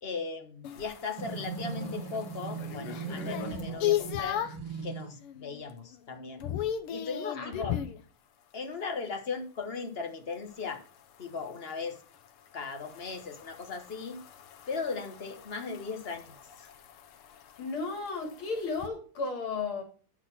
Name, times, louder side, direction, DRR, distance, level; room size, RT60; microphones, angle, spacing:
voice 1, 0.0-4.4 4.8-6.4 6.9-7.8 8.5-10.8 11.2-12.0 12.5-14.2 14.7-16.7, left 4 dB, 35° left, 5 dB, 1.2 m, -37 dB
sound 1, 0.6-4.7 5.2-5.6 5.9-8.0 10.5-18.9, left 11 dB, 90° left, 1.8 m, -37 dB
sound 2, 1.2-5.2, right 5 dB, 55° right, 2.0 m, -38 dB
voice 2, 17.6-19.8, left 4 dB, 70° left, 2 dB, 3.0 m, -34 dB
11.5 x 4.1 x 5.9 m, 0.40 s
omnidirectional pair, 2.4 m